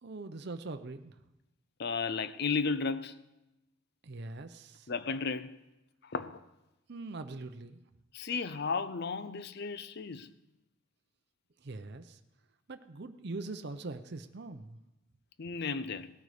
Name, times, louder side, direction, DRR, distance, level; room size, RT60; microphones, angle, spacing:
voice 1, 0.0-1.2 4.0-4.9 6.9-7.8 11.6-12.2 12.7-14.8, right 3 dB, 55° right, 0.7 m, -42 dB
voice 2, 1.8-3.2 4.9-5.6 6.0-6.4 8.1-10.3 15.4-16.1, left 4 dB, 55° left, 0.6 m, -34 dB
17.5 x 9.2 x 4.9 m
head